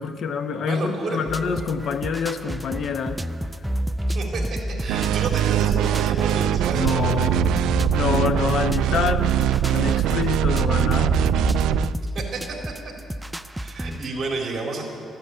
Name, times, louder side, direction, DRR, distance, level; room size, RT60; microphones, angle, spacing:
voice 1, 0.0-3.2 6.8-7.4 7.9-9.4 9.7-11.2, left 6 dB, 60° left, 9 dB, 1.0 m, -26 dB
voice 2, 0.6-1.2 4.1-7.4 12.1-12.6 13.6-14.8, right 3 dB, 40° right, -1 dB, 3.9 m, -31 dB
sound 1, 1.3-14.1, equal, 5° right, 0.4 m, -30 dB
nice wobble, 4.9-11.9, right 11 dB, 85° right, 0.3 m, -22 dB
14.0 x 10.5 x 8.6 m, 2.3 s
cardioid pair, 100°, 0 cm